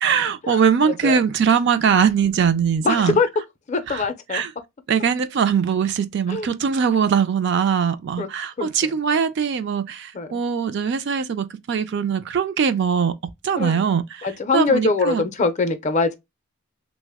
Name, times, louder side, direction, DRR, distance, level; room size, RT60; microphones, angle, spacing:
voice 1, 0.0-3.2 3.9-4.0 4.3-4.5 4.9-13.1 13.4-14.3 14.5-15.2, right 7 dB, 55° right, 0.3 m, -21 dB
voice 2, 0.9-1.2 2.8-3.3 3.7-4.4 6.3-6.5 8.2-8.3 8.6-8.7 10.1-10.3 13.6-13.9 14.2-16.2, left 3 dB, 30° left, 0.4 m, -22 dB
3.2 x 2.0 x 3.4 m
head